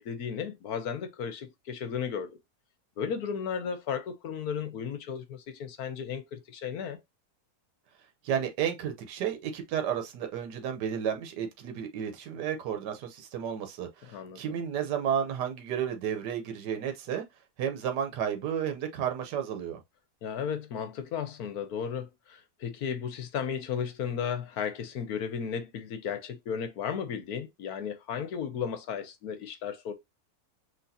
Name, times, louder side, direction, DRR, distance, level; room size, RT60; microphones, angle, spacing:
voice 1, 0.0-2.4 3.0-7.0 14.1-14.4 20.2-29.9, left 7 dB, 70° left, 1.2 m, -34 dB
voice 2, 8.2-17.2 17.6-19.8, right 8 dB, 85° right, 1.4 m, -32 dB
5.9 x 3.1 x 2.7 m
omnidirectional pair, 1.8 m